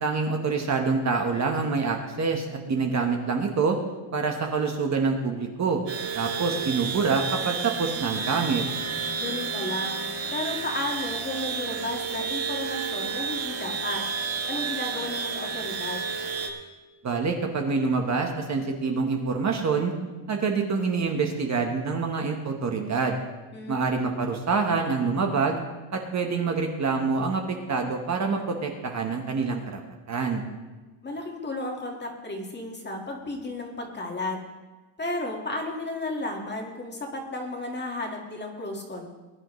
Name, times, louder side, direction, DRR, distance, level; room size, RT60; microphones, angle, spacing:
voice 1, 0.0-3.8 4.1-5.8 6.1-8.6 17.0-19.9 20.3-23.2 23.7-25.6 25.9-29.8 30.1-30.4, right 4 dB, 35° right, 3 dB, 1.2 m, -26 dB
sound 1, 5.9-16.5, right 6 dB, 90° right, 2.4 m, -31 dB
voice 2, 9.1-10.0 10.3-14.0 14.5-16.0 23.5-24.2 31.0-34.4 35.0-39.1, left 2 dB, 20° left, 1 dB, 1.8 m, -33 dB
21.0 x 10.5 x 3.2 m, 1.2 s
cardioid pair, 160°, 48 cm